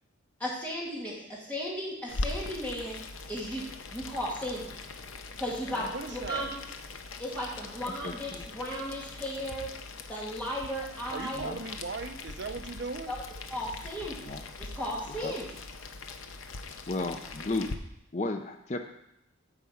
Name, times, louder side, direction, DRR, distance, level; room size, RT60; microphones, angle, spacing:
voice 1, 0.4-3.0 3.3-4.8 5.4-5.9 6.1-6.6 7.2-9.7 10.1-11.5 13.1-13.2 13.5-14.2 14.6-15.5, equal, 5° left, -6 dB, 2.4 m, -35 dB
Boiling, 2.1-17.7, left 3 dB, 70° left, 0.7 m, -41 dB
voice 2, 5.9-6.5 11.1-13.1, right 4 dB, 55° right, 8 dB, 0.6 m, -38 dB
voice 3, 7.9-8.5 11.3-11.6 14.2-14.4 15.2-15.3 16.9-17.7 18.1-18.8, left 2 dB, 35° left, 6 dB, 0.5 m, -34 dB
8.6 x 4.9 x 7.0 m, 0.80 s
head